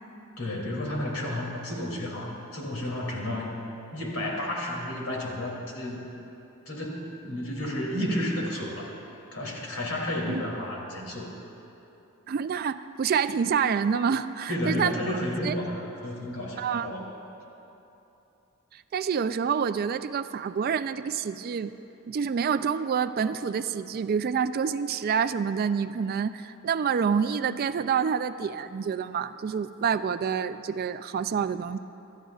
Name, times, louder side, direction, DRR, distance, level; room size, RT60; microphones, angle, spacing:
voice 1, 0.4-3.6 3.9-6.0 6.7-8.9 9.3-11.3 14.5-17.1, left 1 dB, 70° left, -2 dB, 2.7 m, -32 dB
voice 2, 12.3-15.2 15.4-15.5 16.6-16.9 18.7-21.7 22.1-31.8, right 6 dB, 45° right, 13 dB, 0.3 m, -27 dB
26.0 x 13.0 x 2.4 m, 3.0 s
head